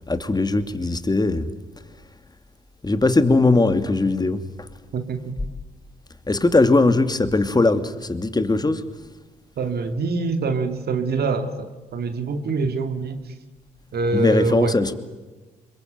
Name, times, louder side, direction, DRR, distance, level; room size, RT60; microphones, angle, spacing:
voice 1, 0.1-1.5 2.8-4.4 6.3-8.8 14.1-15.0, left 2 dB, 20° left, 2.6 m, -19 dB
voice 2, 4.9-5.3 9.6-13.3 13.9-14.8, right 4 dB, 60° right, 2.4 m, -25 dB
26.0 x 23.0 x 9.3 m
hypercardioid pair, 50°, 18 cm